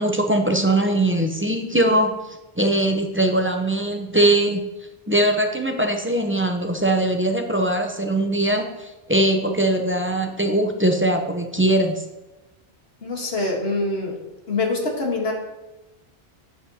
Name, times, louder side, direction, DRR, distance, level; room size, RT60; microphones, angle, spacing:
voice 1, 0.0-2.1 2.6-4.6 5.1-12.0, right 1 dB, 15° right, 4 dB, 0.5 m, -21 dB
voice 2, 13.0-14.2 14.5-15.3, left 2 dB, 75° left, 0 dB, 1.6 m, -24 dB
9.9 x 7.6 x 2.8 m, 1.0 s
omnidirectional pair, 1.1 m